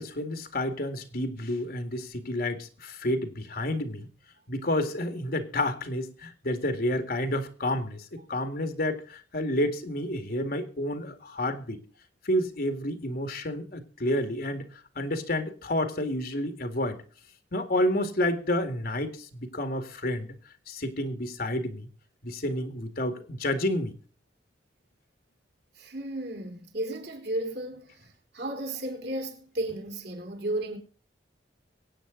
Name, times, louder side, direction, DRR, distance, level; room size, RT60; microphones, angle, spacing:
voice 1, 0.0-4.1 4.5-11.8 12.2-14.7 15.0-17.0 17.5-20.3 20.7-21.9 22.2-23.9, left 1 dB, 55° left, 2.0 m, -30 dB
voice 2, 25.7-30.8, right 1 dB, 65° right, 4.1 m, -34 dB
23.0 x 9.1 x 3.9 m
head